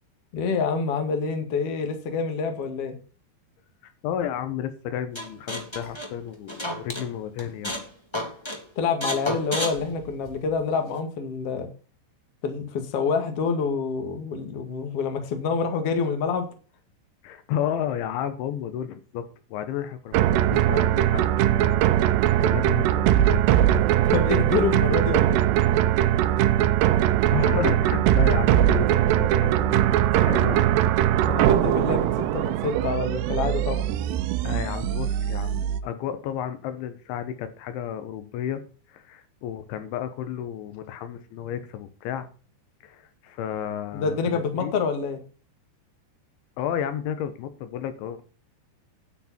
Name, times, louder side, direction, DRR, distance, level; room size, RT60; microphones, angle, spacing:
voice 1, 0.3-3.0 8.8-11.7 12.4-16.5 24.1-25.4 31.3-33.9 43.9-45.2, left 5 dB, 40° left, 6 dB, 2.4 m, -27 dB
voice 2, 3.8-7.9 17.2-21.3 21.5-23.7 27.3-29.9 30.2-30.7 34.4-38.6 38.9-42.3 42.8-44.8 46.6-48.2, left 9 dB, 80° left, 10 dB, 3.6 m, -32 dB
sound 1, 5.1-7.1 7.4-7.9 8.1-8.6 9.0-10.6, equal, 10° left, 1.6 m, -31 dB
sound 2, 20.1-35.8, right 12 dB, 75° right, 2.7 m, -21 dB
10.0 x 9.6 x 4.3 m, 0.36 s
omnidirectional pair, 5.3 m